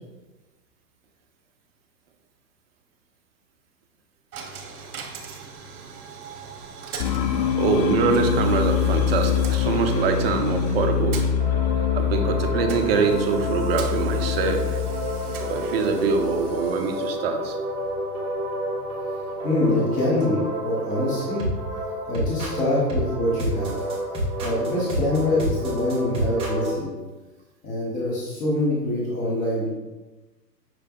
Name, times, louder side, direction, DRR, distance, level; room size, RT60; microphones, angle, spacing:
Coin (dropping), 4.3-21.3, right 5 dB, 60° right, 0.9 m, -42 dB
sound 1, 7.0-16.6, left 7 dB, 85° left, 0.6 m, -25 dB
voice 1, 7.6-11.2 11.9-14.8 15.5-17.6, right 5 dB, 40° right, 5 dB, 0.5 m, -24 dB
sound 2, 11.4-26.7, equal, 10° right, 1.0 m, -30 dB
voice 2, 19.4-21.4 22.1-23.8 24.4-26.9 27.6-29.7, left 1 dB, 15° left, -5 dB, 0.8 m, -24 dB
5.7 x 3.3 x 2.3 m, 1.1 s
hypercardioid pair, 120°, 50 cm